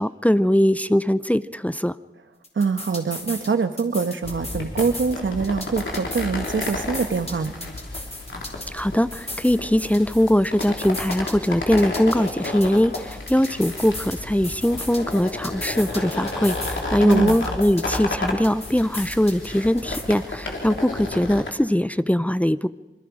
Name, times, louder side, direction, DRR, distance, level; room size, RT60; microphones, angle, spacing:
voice 1, 0.0-2.0 8.7-22.7, equal, 5° left, 14 dB, 0.6 m, -21 dB
sound 1, 2.4-3.5 3.8-5.1 5.4-8.8 9.1-11.5 11.8-14.2 14.4-16.8 17.1-19.5 19.8-20.0, left 1 dB, 30° left, 4.4 m, -36 dB
voice 2, 2.5-7.5 17.0-17.4, right 5 dB, 75° right, 9 dB, 1.3 m, -24 dB
sound 2, 4.2-21.5, left 2 dB, 70° left, 3.5 m, -32 dB
27.5 x 22.0 x 5.0 m, 1.2 s
cardioid pair, 45°, 20 cm